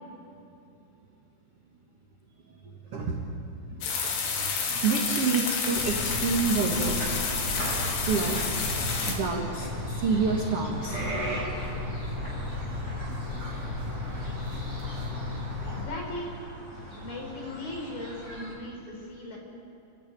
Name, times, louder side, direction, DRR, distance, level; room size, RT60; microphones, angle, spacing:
sound 1, 3.8-9.1, left 5 dB, 75° left, 4.3 m, -30 dB
voice 1, 3.9-7.0 8.1-8.7 9.1-11.0 13.4-13.7 14.8-15.3, right 5 dB, 70° right, 1 dB, 1.3 m, -29 dB
sound 2, 5.8-15.8, left 1 dB, 15° right, 4.7 m, -34 dB
sound 3, 7.0-18.5, equal, 20° left, 5.8 m, -42 dB
voice 2, 15.6-16.4 17.0-19.4, left 1 dB, 55° left, 0 dB, 5.4 m, -38 dB
29.0 x 10.5 x 9.0 m, 2.8 s
omnidirectional pair, 4.8 m